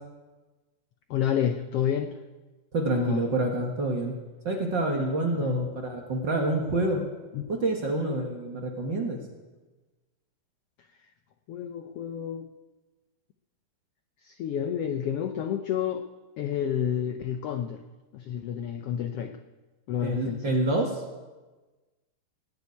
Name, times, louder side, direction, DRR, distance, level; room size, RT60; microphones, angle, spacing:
voice 1, 1.1-2.2 2.9-3.2 5.3-5.7 7.3-7.5 11.5-12.5 14.2-16.0 16.4-17.8 18.1-19.4 19.9-20.5, left 9 dB, 85° left, 7 dB, 1.3 m, -30 dB
voice 2, 2.7-4.1 4.4-7.0 7.5-9.2 20.0-21.0, right 2 dB, 45° right, 2 dB, 1.7 m, -27 dB
18.0 x 7.3 x 9.5 m, 1.2 s
omnidirectional pair, 3.7 m